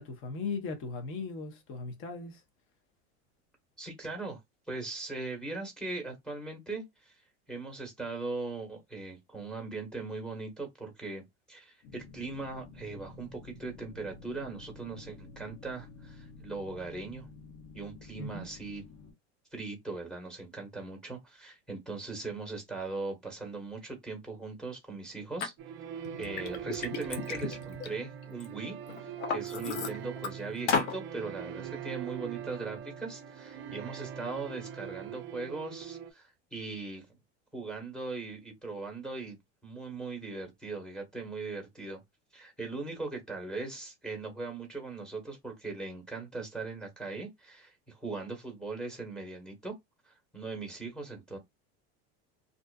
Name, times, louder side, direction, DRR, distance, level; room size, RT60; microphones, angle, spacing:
voice 1, 0.0-2.4 18.2-18.4, left 4 dB, 40° left, 0.8 m, -38 dB
voice 2, 3.8-4.4 4.7-7.2 7.5-17.3 17.7-18.8 19.5-25.5 26.2-37.1 37.5-39.4 39.6-42.0 42.3-49.7 50.1-51.4, right 3 dB, ahead, 1.1 m, -39 dB
sound 1, 11.8-19.1, left 4 dB, 60° left, 1.0 m, -51 dB
Liquid, 25.4-25.5 26.0-28.5 28.9-30.3 30.7-31.0, left 5 dB, 90° left, 0.8 m, -33 dB
sound 2, 25.6-36.1, right 9 dB, 40° right, 0.5 m, -42 dB
2.5 x 2.4 x 2.3 m
supercardioid pair, 130°, 34 cm